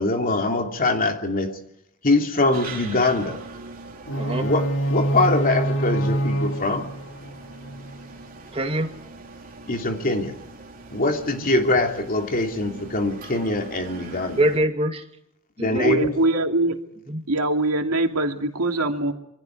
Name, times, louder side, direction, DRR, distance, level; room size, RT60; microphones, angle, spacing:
voice 1, 0.0-1.6 2.0-3.4 4.4-6.9 9.7-10.3 10.9-14.4 15.6-16.1, left 2 dB, 40° left, 4 dB, 2.9 m, -23 dB
sound 1, 2.5-14.6, right 3 dB, 40° right, 4.1 m, -42 dB
sound 2, 4.1-8.1, right 1 dB, 65° left, 2.1 m, -26 dB
voice 2, 4.2-4.5 8.5-8.9 14.4-15.0 15.6-16.0 17.1-17.2, right 1 dB, 25° right, 5 dB, 2.3 m, -24 dB
voice 3, 15.8-16.8 17.3-19.1, right 2 dB, 90° right, 4 dB, 2.7 m, -23 dB
26.5 x 24.0 x 4.8 m, 0.79 s
head